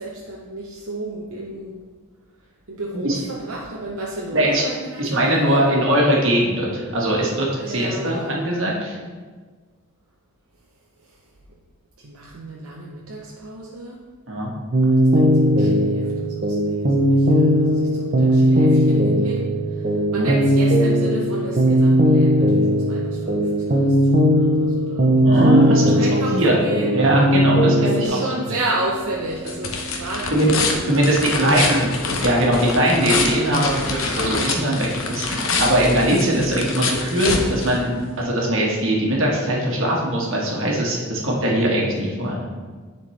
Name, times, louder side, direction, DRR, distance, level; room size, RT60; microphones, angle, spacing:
voice 1, 0.0-1.8 2.7-5.7 7.6-8.4 12.0-14.0 14.8-19.4 19.7-19.8 20.1-25.1 25.5-27.0 27.8-30.7 30.9-31.7, right 2 dB, 80° right, -3 dB, 0.8 m, -32 dB
voice 2, 4.3-4.6 5.0-9.0 14.3-14.5 20.1-20.3 25.2-26.6 26.9-28.6 30.3-30.5 30.9-31.9 32.2-42.4, right 1 dB, 60° right, -3 dB, 1.5 m, -20 dB
sound 1, 14.7-28.1, equal, 40° right, 0.7 m, -18 dB
sound 2, 28.8-38.2, left 3 dB, 65° left, 0.9 m, -26 dB
9.9 x 4.4 x 3.2 m, 1.5 s
head